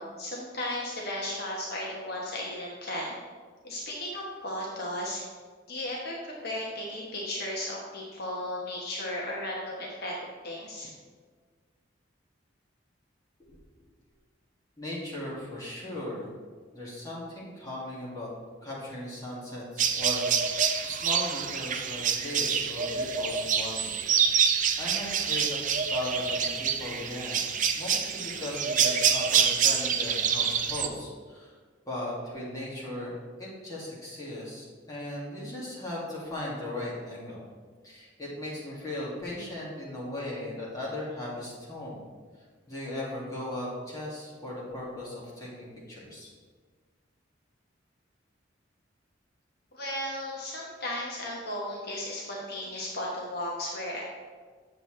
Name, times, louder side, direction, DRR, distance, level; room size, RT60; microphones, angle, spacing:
voice 1, 0.0-3.2 3.6-5.3 5.7-10.1 10.4-10.9 49.7-54.0, left 1 dB, 55° left, -3 dB, 1.1 m, -35 dB
voice 2, 14.8-16.4 16.7-18.3 18.6-23.9 24.8-25.6 25.9-27.4 27.7-31.5 31.9-37.4 37.8-42.0 42.7-46.3, left 1 dB, 20° left, -6 dB, 2.2 m, -37 dB
sound 1, 19.8-30.9, right 7 dB, 40° right, 0.5 m, -27 dB
8.1 x 7.0 x 3.3 m, 1.5 s
head